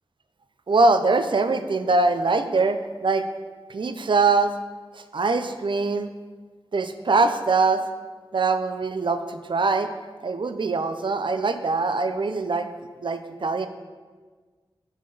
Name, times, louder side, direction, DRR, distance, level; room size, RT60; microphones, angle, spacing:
voice 1, 0.7-3.3 3.7-4.5 5.0-6.1 6.7-7.8 8.3-9.9 10.2-12.7 13.0-13.7, right 3 dB, 60° right, 9 dB, 0.4 m, -23 dB
9.8 x 3.8 x 3.9 m, 1.4 s
wide cardioid pair, 65°, 9 cm